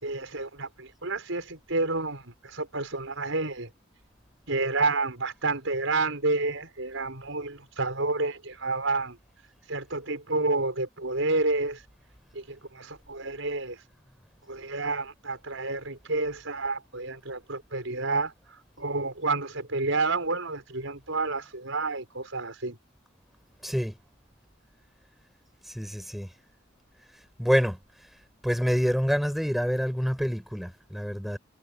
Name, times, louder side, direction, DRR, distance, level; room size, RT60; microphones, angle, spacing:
voice 1, 0.0-3.7 4.5-9.2 9.7-11.8 12.3-13.8 14.5-18.3 18.8-22.8, right 3 dB, 75° right, 5.4 m, -29 dB
voice 2, 23.6-23.9 25.6-26.3 27.4-28.1 28.4-31.4, equal, ahead, 5.2 m, -27 dB
head